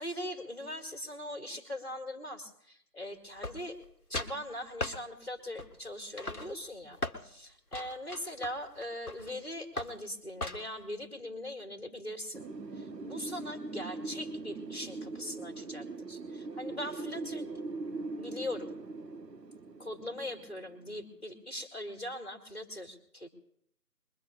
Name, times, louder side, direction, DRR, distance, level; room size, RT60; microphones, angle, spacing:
voice 1, 0.0-3.8 4.1-12.5 12.7-17.6 18.2-18.7 19.8-23.3, left 1 dB, 40° left, 4 dB, 2.3 m, -41 dB
sound 1, 3.4-3.9 4.1-4.4 4.8-5.0 5.6-5.9 6.2-7.2 7.7-9.3 9.8-10.0 10.4-10.8, left 2 dB, 65° left, 1.4 m, -38 dB
Wind, 12.3-21.0, right 3 dB, 80° right, 1.0 m, -41 dB
27.0 x 22.0 x 2.4 m, 0.70 s
figure-of-eight pair, 180°, 49 cm